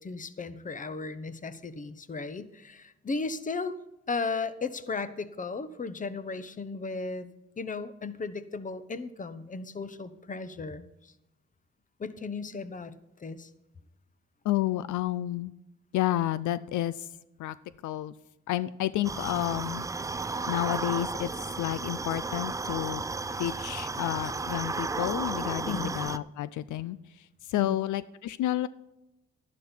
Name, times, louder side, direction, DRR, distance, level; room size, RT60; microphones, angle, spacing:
voice 1, 0.0-3.7 4.1-7.3 7.6-11.1 12.0-12.9 13.2-13.5 25.7-25.9 27.6-27.8, left 4 dB, 25° left, 13 dB, 0.9 m, -35 dB
voice 2, 14.4-15.5 15.9-17.1 17.4-17.6 17.8-18.1 18.5-19.9 20.5-21.3 21.6-23.0 23.4-28.7, left 14 dB, 75° left, 16 dB, 0.5 m, -30 dB
sound 1, 19.0-26.2, right 3 dB, 10° right, 0.4 m, -33 dB
12.0 x 11.0 x 4.4 m, 0.91 s
cardioid pair, 90°, 30 cm